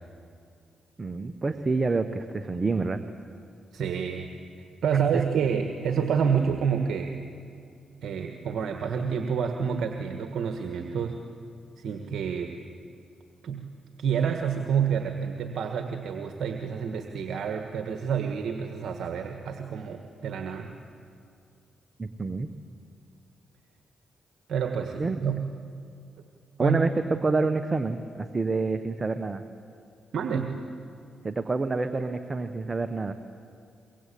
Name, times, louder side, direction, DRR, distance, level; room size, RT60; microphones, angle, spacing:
voice 1, 1.0-3.0 5.1-5.2 22.0-22.5 25.0-25.2 26.6-29.4 31.2-33.1, right 3 dB, 35° right, 8 dB, 1.3 m, -27 dB
voice 2, 3.7-4.3 4.6-7.2 8.0-11.2 11.8-12.5 13.4-13.7 14.0-20.7 24.5-25.5 26.6-26.8 30.1-30.6, right 7 dB, 70° right, 4 dB, 1.6 m, -28 dB
25.0 x 23.5 x 8.6 m, 2.4 s
supercardioid pair, 55°, 0 cm